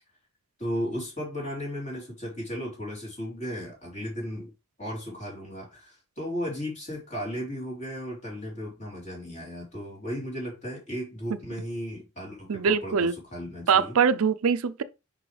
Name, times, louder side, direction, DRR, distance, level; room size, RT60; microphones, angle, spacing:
voice 1, 0.6-4.5 4.8-14.0, equal, 35° left, 3.4 m, -35 dB
voice 2, 12.5-13.1 13.7-14.8, right 6 dB, 75° right, 0.5 m, -23 dB
6.1 x 5.3 x 3.3 m
head